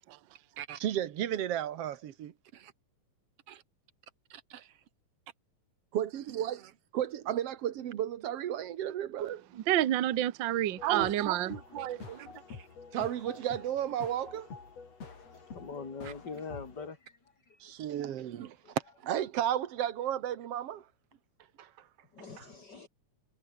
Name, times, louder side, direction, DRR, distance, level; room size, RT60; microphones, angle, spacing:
voice 1, 0.6-2.7 3.5-3.6 4.3-4.7 5.9-9.5 12.5-12.7 12.9-14.5 17.6-18.6 19.0-20.9 21.6-21.7 22.4-22.5, right 11 dB, 55° right, 2.0 m, -34 dB
voice 2, 9.6-12.3, right 13 dB, 85° right, 1.0 m, -29 dB
sound 1, 10.8-16.9, left 5 dB, 50° left, 5.2 m, -47 dB
voice 3, 15.2-17.7 18.0-18.2 18.6-18.8 22.1-22.9, left 4 dB, 30° left, 3.7 m, -45 dB
omnidirectional pair, 3.7 m